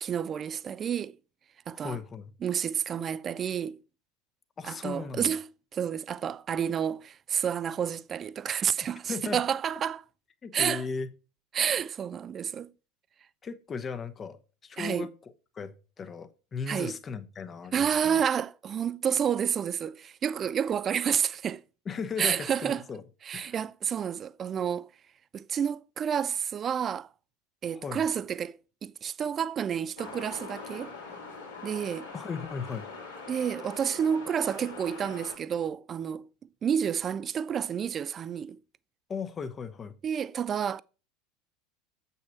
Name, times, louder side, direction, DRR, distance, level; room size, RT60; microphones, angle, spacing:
voice 1, 0.0-1.2 1.7-2.0 2.4-3.8 4.6-10.0 10.5-10.8 11.5-12.7 14.8-15.1 16.7-17.0 17.7-21.6 22.2-22.8 23.3-24.9 25.3-27.1 27.6-30.9 31.6-32.1 33.3-36.3 36.6-38.6 40.0-40.8, right 8 dB, 30° right, 0.4 m, -30 dB
voice 2, 1.7-2.3 4.6-5.3 9.1-9.4 10.4-11.1 13.4-15.1 15.5-18.2 21.9-23.0 23.3-23.6 27.8-28.0 32.1-32.9 39.1-40.0, left 5 dB, 25° left, 0.9 m, -37 dB
sound 1, 30.0-35.4, left 4 dB, 75° left, 2.7 m, -43 dB
8.0 x 5.6 x 4.6 m
figure-of-eight pair, 75°, 0 cm